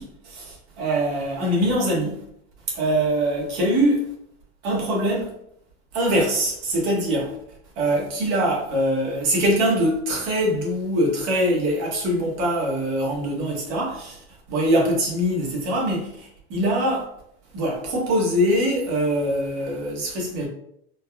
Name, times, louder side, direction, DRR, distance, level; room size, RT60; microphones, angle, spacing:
voice 1, 0.0-2.2 2.7-4.1 4.6-5.3 5.9-7.4 7.8-14.2 14.5-17.0 17.5-20.5, equal, 55° right, 1.3 m, -23 dB
3.9 x 2.3 x 2.3 m
hypercardioid pair, 105°, 31 cm